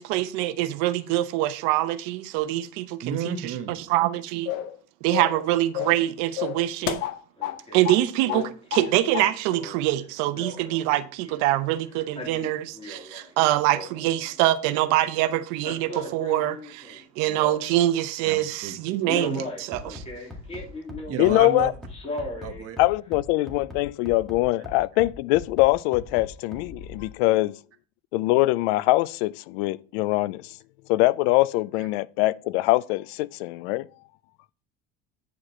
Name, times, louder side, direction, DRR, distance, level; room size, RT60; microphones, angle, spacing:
voice 1, 0.0-3.3 3.7-4.5 5.0-7.0 7.7-20.0, right 15 dB, 80° right, 0.8 m, -25 dB
voice 2, 3.0-3.8 18.2-18.8 21.1-21.7 22.4-22.8 31.8-31.9, right 8 dB, 50° right, 1.4 m, -32 dB
sound 1, 4.5-4.8 5.1-5.4 5.7-6.1 6.4-7.6 7.8-8.0 8.3-8.9 9.1-9.3, left 13 dB, 60° left, 0.8 m, -30 dB
Male speech man speaking, 6.8-7.1 7.4-7.9 8.3-11.5 11.9-13.3 13.5-14.4 15.5-17.9 18.4-18.6 19.0-21.4 21.9-22.6 23.1-23.2, left 2 dB, 20° left, 3.0 m, -37 dB
Bass drum, 19.7-27.1, left 2 dB, ahead, 1.9 m, -40 dB
voice 3, 21.2-21.7 22.8-27.6 28.1-30.5 30.9-33.9, left 18 dB, 90° left, 0.5 m, -23 dB
9.5 x 5.1 x 4.3 m
cardioid pair, 125°, 30 cm